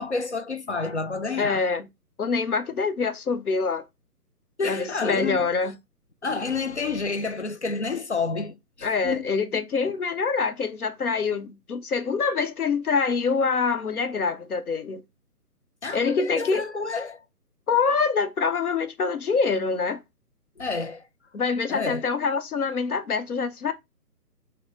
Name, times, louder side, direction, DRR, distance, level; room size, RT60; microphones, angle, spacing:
voice 1, 0.0-1.6 4.6-5.5 6.2-9.7 15.8-17.2 20.6-21.1 21.7-22.1, left 4 dB, 50° left, 0.4 m, -29 dB
voice 2, 1.4-1.8 2.2-3.8 4.6-5.7 8.8-15.0 15.9-16.6 17.7-20.0 21.3-23.7, left 5 dB, 65° left, 0.9 m, -25 dB
6.2 x 2.2 x 3.7 m
hypercardioid pair, 175°, 48 cm